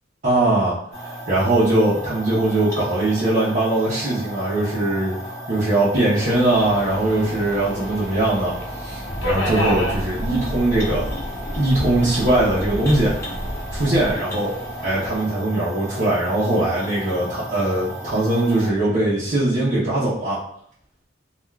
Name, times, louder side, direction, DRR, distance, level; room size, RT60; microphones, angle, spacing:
voice 1, 0.2-5.2 5.5-8.5 8.8-11.1 11.5-13.1 13.7-14.5 14.8-20.4, right 2 dB, 45° right, -10 dB, 0.8 m, -21 dB
sound 1, 0.9-18.7, equal, 15° left, 0.9 m, -35 dB
Subway metro underground, 6.2-15.3, equal, 80° left, 0.7 m, -33 dB
sound 2, 9.1-14.1, equal, 35° left, 0.4 m, -31 dB
3.5 x 2.4 x 2.3 m, 0.64 s
head